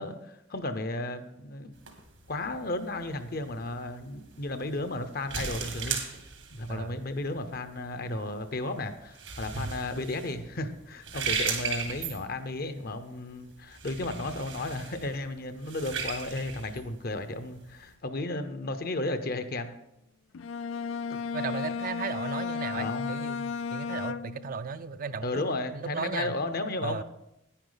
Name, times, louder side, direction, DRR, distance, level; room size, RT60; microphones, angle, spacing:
voice 1, 0.0-1.7 2.3-6.2 6.5-19.7 21.1-21.2 22.8-23.1 25.2-27.0, left 2 dB, 50° left, 10 dB, 0.8 m, -34 dB
sound 1, 1.8-17.9, right 6 dB, 85° right, 1.8 m, -38 dB
Bowed string instrument, 20.3-24.6, left 5 dB, 85° left, 0.4 m, -34 dB
voice 2, 21.3-26.3 26.8-27.0, right 5 dB, 45° right, 12 dB, 0.4 m, -36 dB
10.0 x 9.7 x 4.0 m, 0.86 s
head